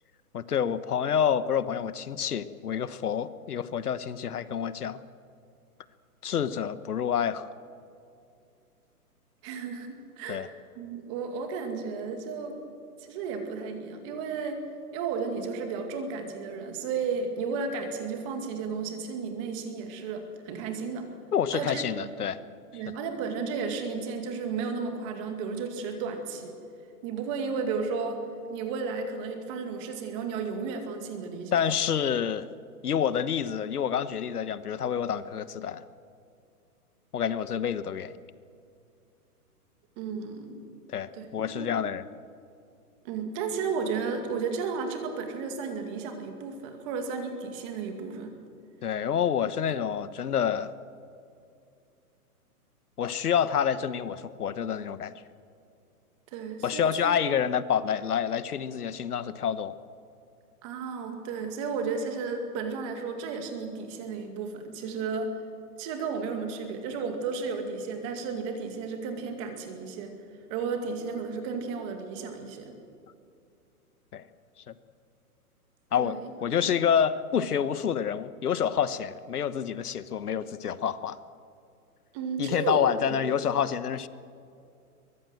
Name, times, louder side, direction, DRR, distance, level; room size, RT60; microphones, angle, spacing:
voice 1, 0.3-5.0 6.2-7.5 10.3-10.5 21.3-22.4 22.7-22.8 31.5-32.5 32.8-35.8 37.1-38.2 40.9-42.1 48.8-50.7 53.0-55.1 56.6-59.7 74.1-74.2 75.9-81.2 82.4-84.1, left 8 dB, 75° left, 14 dB, 1.2 m, -28 dB
voice 2, 9.4-10.5 10.8-12.6 13.0-14.6 14.9-21.1 21.5-22.1 22.7-26.6 27.0-28.2 28.5-31.6 40.0-40.7 41.1-41.7 43.0-48.3 49.6-49.7 56.3-56.9 60.6-65.4 65.8-70.2 70.5-72.7 76.0-76.7 82.1-82.8 83.1-83.4, right 5 dB, 20° right, 5 dB, 2.2 m, -33 dB
23.5 x 20.5 x 7.8 m, 2.5 s
hypercardioid pair, 170°, 46 cm